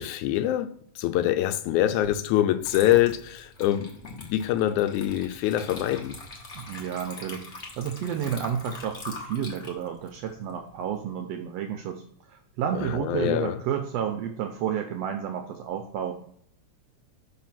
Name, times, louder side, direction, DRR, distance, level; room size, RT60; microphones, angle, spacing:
voice 1, 0.0-6.2 12.8-13.6, left 13 dB, 80° left, 1.9 m, -25 dB
Water / Liquid, 2.0-2.2 2.6-11.2, left 2 dB, 50° left, 0.8 m, -43 dB
voice 2, 6.5-16.1, right 8 dB, 85° right, 1.4 m, -31 dB
6.1 x 4.2 x 5.7 m
omnidirectional pair, 3.6 m